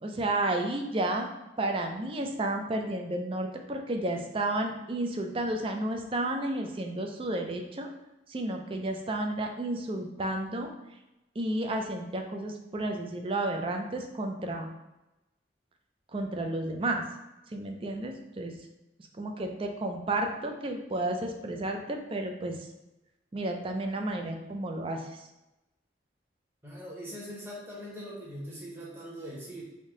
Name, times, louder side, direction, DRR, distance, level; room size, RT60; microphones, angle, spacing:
voice 1, 0.0-1.3 1.6-7.9 8.3-10.7 11.4-14.7 16.1-17.0 17.5-18.5 19.2-22.6 23.3-25.3, right 1 dB, 30° right, 3 dB, 0.4 m, -32 dB
voice 2, 26.6-29.6, equal, 15° right, -6 dB, 1.0 m, -41 dB
3.5 x 2.7 x 3.7 m, 0.97 s
head